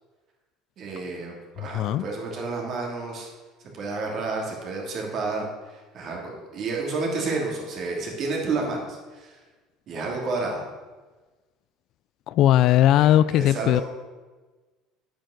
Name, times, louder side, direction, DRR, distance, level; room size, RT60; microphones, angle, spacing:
voice 1, 0.8-3.3 3.7-9.4 9.9-10.6 13.3-13.8, right 3 dB, 50° right, -1 dB, 2.9 m, -30 dB
voice 2, 1.7-2.0 12.3-13.8, left 12 dB, 60° left, 17 dB, 0.3 m, -18 dB
8.6 x 6.5 x 6.4 m, 1.3 s
supercardioid pair, 105°, 0 cm